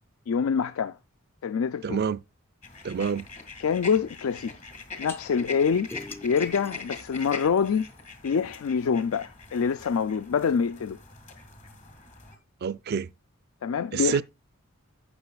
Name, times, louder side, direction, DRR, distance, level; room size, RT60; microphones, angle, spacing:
voice 1, 0.3-1.0 1.4-2.0 3.6-4.5 5.0-5.9 6.2-7.9 8.2-11.0 13.6-14.2, left 6 dB, 70° left, 0.4 m, -25 dB
voice 2, 1.8-2.2 2.8-3.3 12.6-13.1 13.9-14.2, right 6 dB, 50° right, 0.4 m, -27 dB
sound 1, 2.6-12.4, left 3 dB, 35° left, 1.8 m, -43 dB
sound 2, 5.1-5.2 5.9-8.1, left 2 dB, 10° left, 0.5 m, -44 dB
16.0 x 6.0 x 2.3 m
head